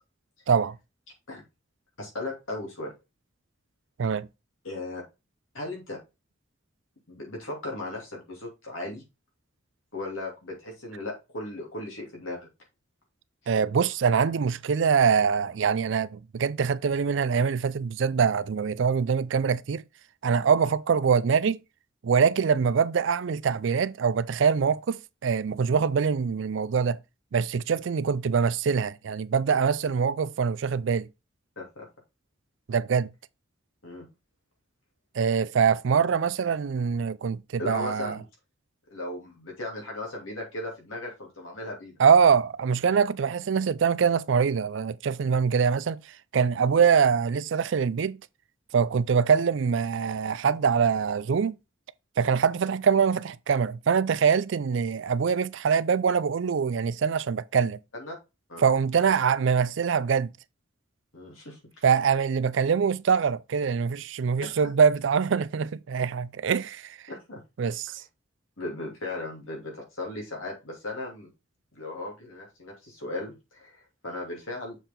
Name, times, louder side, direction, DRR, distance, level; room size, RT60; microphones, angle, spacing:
voice 1, 2.0-2.9 4.6-5.0 5.5-6.0 7.1-9.0 9.9-12.5 27.7-27.8 31.6-31.9 33.8-34.1 37.6-38.2 38.9-41.9 57.9-58.1 58.5-58.6 61.1-61.6 64.4-64.7 67.1-67.4 68.6-71.3 71.7-74.8, left 2 dB, 90° left, 2.7 m, -37 dB
voice 2, 13.5-19.8 20.2-21.6 22.0-27.0 27.3-31.1 32.7-33.1 35.1-38.2 42.0-46.0 46.3-48.2 48.7-51.6 52.2-57.8 58.6-60.3 61.8-67.0 67.6-68.0, right 6 dB, 70° right, 0.4 m, -24 dB
7.0 x 4.5 x 3.7 m
head